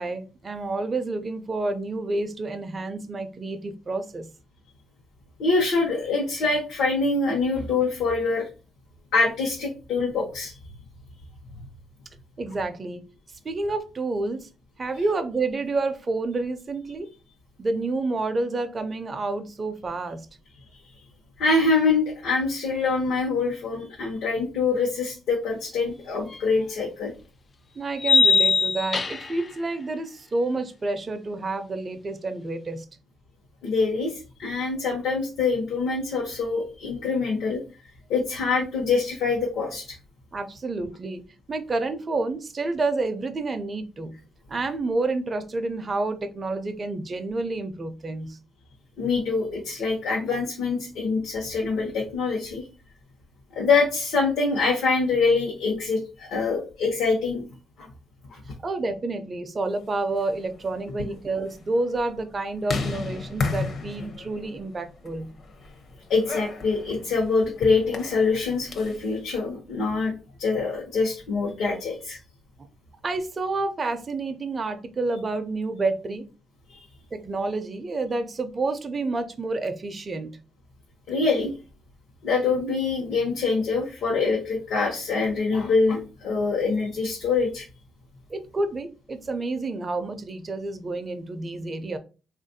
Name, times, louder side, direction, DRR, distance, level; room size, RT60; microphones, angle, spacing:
voice 1, 0.0-4.3 12.4-13.0 13.4-14.5 14.8-17.1 17.6-20.3 27.8-32.9 40.3-44.2 44.5-48.4 58.6-65.3 73.0-76.3 77.1-80.4 88.3-92.0, right 3 dB, 35° right, 7 dB, 0.4 m, -29 dB
voice 2, 5.4-8.5 9.1-10.5 21.4-27.1 33.6-37.6 38.1-40.0 49.0-52.7 53.5-57.4 57.8-57.9 58.3-58.4 66.1-70.1 70.4-72.2 76.7-76.8 81.1-81.5 82.2-87.7, left 4 dB, 80° left, -2 dB, 0.9 m, -25 dB
sound 1, 26.3-26.4 28.0-29.4, left 4 dB, 35° left, 0.3 m, -20 dB
sound 2, 60.0-69.1, left 4 dB, 55° left, 0.7 m, -35 dB
3.3 x 2.4 x 2.6 m, 0.33 s
cardioid pair, 90°, 0 cm